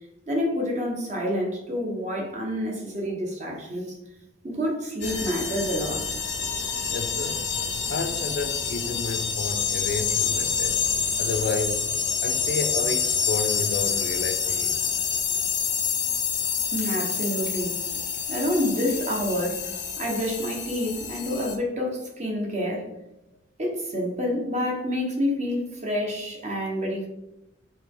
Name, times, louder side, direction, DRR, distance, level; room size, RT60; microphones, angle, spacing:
voice 1, 0.3-4.0 4.4-6.1 16.7-22.9 23.6-27.1, equal, 40° right, 1.1 m, -28 dB
sound 1, 5.0-21.6, left 6 dB, 85° left, 0.8 m, -27 dB
voice 2, 6.9-7.5 7.9-10.8 11.2-11.9 12.2-14.8, left 3 dB, 60° left, 0.5 m, -31 dB
4.3 x 2.9 x 3.8 m
head